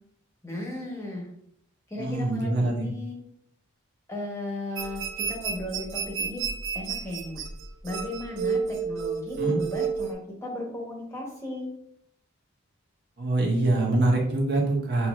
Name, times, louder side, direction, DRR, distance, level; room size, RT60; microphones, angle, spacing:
voice 1, 0.4-1.3 1.9-3.2 4.1-5.0 5.3-6.4 6.7-7.4 7.8-11.7, left 1 dB, 15° left, -2 dB, 1.0 m, -35 dB
voice 2, 2.0-2.9 9.4-9.6 13.2-15.1, right 2 dB, 50° right, -2 dB, 1.1 m, -24 dB
sound 1, 4.7-10.1, right 6 dB, 65° right, 0.6 m, -31 dB
6.8 x 2.9 x 2.5 m, 0.70 s
head